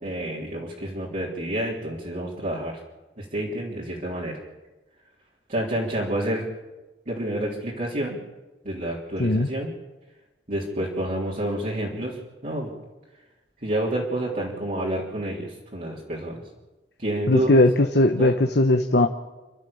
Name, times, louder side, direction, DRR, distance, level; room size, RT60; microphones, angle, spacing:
voice 1, 0.0-2.8 3.2-4.4 5.5-6.5 7.1-8.2 8.6-9.7 10.5-12.2 12.4-12.7 13.6-16.4 17.0-17.6 18.2-18.3, right 1 dB, 45° right, -6 dB, 3.5 m, -29 dB
voice 2, 17.3-19.1, left 1 dB, 65° left, 5 dB, 1.1 m, -19 dB
30.0 x 12.0 x 7.1 m, 1.1 s
head